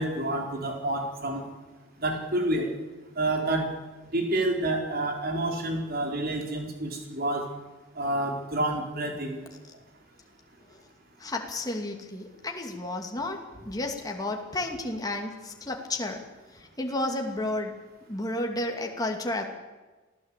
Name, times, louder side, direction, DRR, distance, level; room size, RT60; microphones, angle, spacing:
voice 1, 0.0-1.4 2.0-2.7 3.2-3.7 4.1-7.4 8.0-9.4, right 1 dB, 50° right, 2 dB, 4.6 m, -28 dB
voice 2, 11.2-16.2 16.5-19.4, left 2 dB, 20° left, 2 dB, 2.6 m, -32 dB
27.0 x 16.5 x 8.4 m, 1.2 s
head